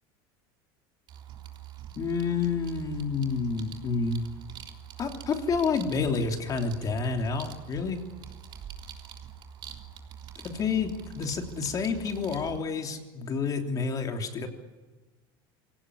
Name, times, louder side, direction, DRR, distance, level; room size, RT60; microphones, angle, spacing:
sound 1, 1.1-12.6, right 9 dB, 40° right, 3.5 m, -45 dB
voice 1, 2.0-4.2 5.0-8.0 10.4-14.5, left 5 dB, 30° left, 4 dB, 3.3 m, -29 dB
24.5 x 18.0 x 9.9 m, 1.2 s
supercardioid pair, 135°, 12 cm